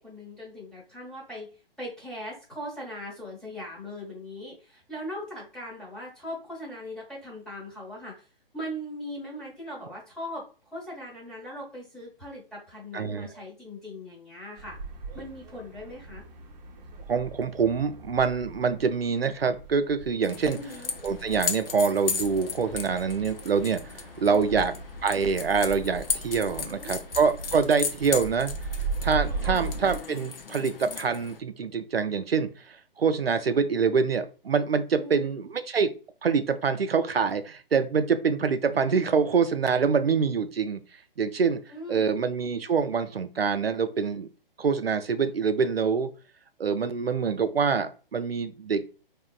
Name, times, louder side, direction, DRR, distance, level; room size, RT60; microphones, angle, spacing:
voice 1, 0.0-1.5 1.8-8.3 8.5-10.4 10.7-14.8 15.1-16.2 20.4-20.9 24.3-24.6 26.4-26.9 29.4-29.7 34.9-35.3 41.7-42.1, equal, ahead, -6 dB, 1.0 m, -40 dB
voice 2, 12.9-13.3 17.1-20.6 21.0-23.8 24.2-24.7 25.0-28.5 29.0-35.9 36.2-40.8 41.2-41.6 41.9-44.3 44.6-46.1 46.6-48.8, right 5 dB, 90° right, 9 dB, 0.5 m, -25 dB
sound 1, 14.6-30.0, right 4 dB, 45° right, 0.7 m, -39 dB
sound 2, 20.2-31.4, left 5 dB, 70° left, 0.7 m, -36 dB
3.6 x 2.8 x 2.3 m, 0.36 s
figure-of-eight pair, 130°, 29 cm